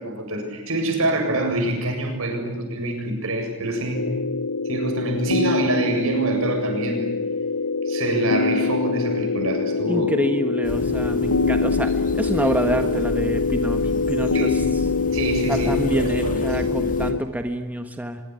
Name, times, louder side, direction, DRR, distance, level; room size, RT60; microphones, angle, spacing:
voice 1, 0.0-4.1 4.6-7.2 7.9-10.1 10.9-11.2 14.3-14.6 15.1-17.0, right 1 dB, 70° right, 4 dB, 7.7 m, -26 dB
sound 1, 3.9-17.2, left 4 dB, 90° left, 1.0 m, -24 dB
voice 2, 9.9-14.6 15.5-18.2, right 1 dB, 10° right, 6 dB, 1.4 m, -27 dB
sound 2, 10.6-17.1, equal, 40° left, 2.7 m, -32 dB
24.5 x 23.0 x 9.9 m, 1.1 s
head